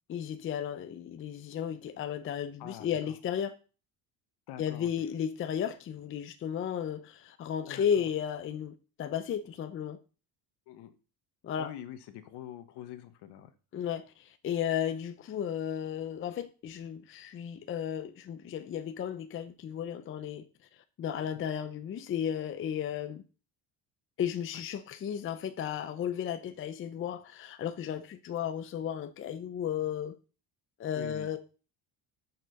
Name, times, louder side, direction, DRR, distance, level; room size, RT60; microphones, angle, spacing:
voice 1, 0.1-3.5 4.6-10.0 11.4-11.7 13.7-20.5 21.0-23.2 24.2-30.1 30.8-31.4, left 9 dB, 30° left, 0.6 m, -34 dB
voice 2, 2.6-3.1 4.5-5.1 7.7-8.1 10.7-10.9 11.6-13.5 21.2-21.3 24.5-24.6 30.9-31.4, left 11 dB, 70° left, 1.4 m, -45 dB
6.9 x 5.9 x 6.5 m
cardioid pair, 170°, 42 cm